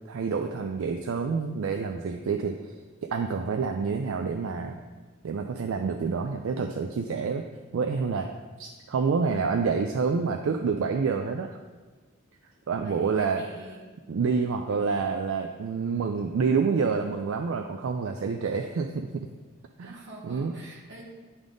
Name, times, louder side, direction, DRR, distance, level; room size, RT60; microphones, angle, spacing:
voice 1, 0.1-2.6 3.0-4.8 5.2-7.4 7.7-8.3 8.6-11.6 12.7-13.4 14.1-19.3 19.8-20.0 20.2-20.5, right 5 dB, 75° right, 4 dB, 0.4 m, -28 dB
voice 2, 12.8-13.8 14.7-14.9 19.8-21.2, right 1 dB, 55° right, -1 dB, 1.3 m, -45 dB
9.4 x 3.5 x 3.8 m, 1.3 s
head